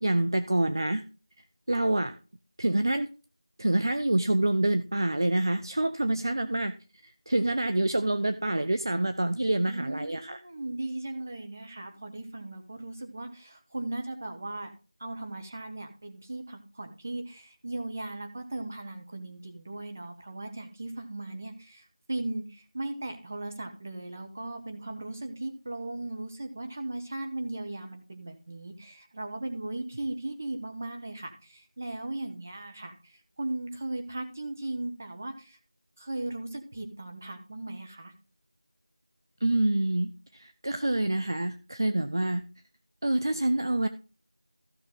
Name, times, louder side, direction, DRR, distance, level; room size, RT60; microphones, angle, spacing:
voice 1, 0.0-1.0 1.7-2.2 2.6-3.1 3.6-6.7 7.0-10.4 39.4-42.4 43.0-43.9, right 1 dB, 40° right, 10 dB, 0.6 m, -27 dB
voice 2, 9.7-14.7 15.0-35.6 36.0-38.1, right 2 dB, 25° right, 5 dB, 1.2 m, -37 dB
15.0 x 6.0 x 3.9 m, 0.35 s
figure-of-eight pair, 175°, 3 cm